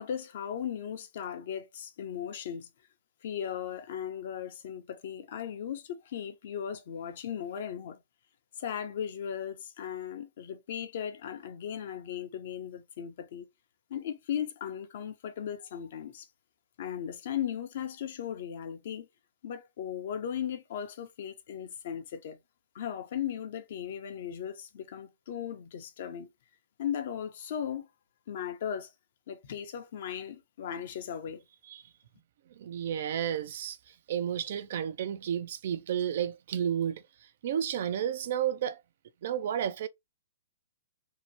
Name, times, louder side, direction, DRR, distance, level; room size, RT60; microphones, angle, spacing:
voice 1, 0.0-2.7 3.2-8.0 8.6-13.5 13.9-16.3 16.8-19.1 19.4-22.4 22.7-26.3 26.8-27.9 28.3-28.9 29.3-31.4, left 9 dB, 55° left, 0.7 m, -37 dB
voice 2, 32.6-37.0 37.4-38.8 39.2-39.9, right 9 dB, 60° right, 0.4 m, -32 dB
2.8 x 2.0 x 2.8 m
hypercardioid pair, 140°, 0 cm